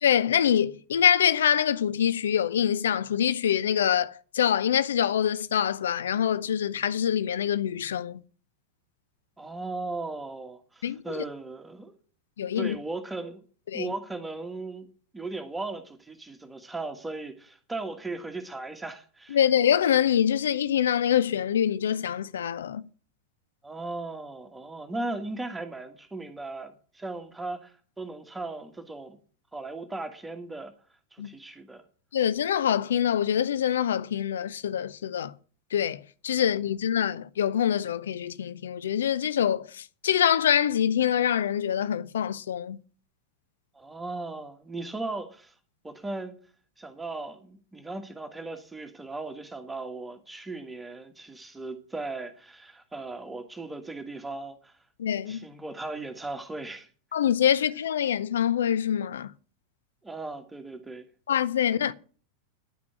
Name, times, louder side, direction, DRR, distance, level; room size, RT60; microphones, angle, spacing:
voice 1, 0.0-8.2 10.8-11.0 12.4-12.8 13.7-13.9 19.3-22.8 31.2-31.3 32.1-35.3 35.7-42.8 55.0-55.5 57.1-59.3 61.3-61.9, left 9 dB, 65° left, 0.6 m, -25 dB
voice 2, 9.4-11.9 12.5-13.4 13.7-14.9 15.1-19.4 23.6-29.2 29.5-30.7 31.1-31.8 43.7-45.5 45.8-46.4 46.8-54.8 55.3-56.9 60.0-61.1, right 2 dB, 10° right, 1.5 m, -37 dB
10.5 x 6.0 x 8.6 m
figure-of-eight pair, 90°, 0 cm